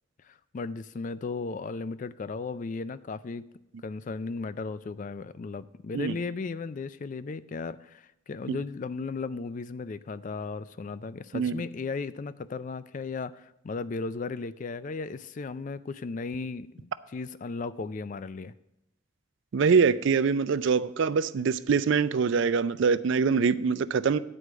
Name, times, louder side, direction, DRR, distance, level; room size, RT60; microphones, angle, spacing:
voice 1, 0.2-3.5 3.8-18.5, left 4 dB, 35° left, 15 dB, 0.3 m, -36 dB
voice 2, 11.3-11.6 19.5-24.2, right 5 dB, 55° right, 15 dB, 0.4 m, -24 dB
9.8 x 4.8 x 7.7 m, 0.87 s
head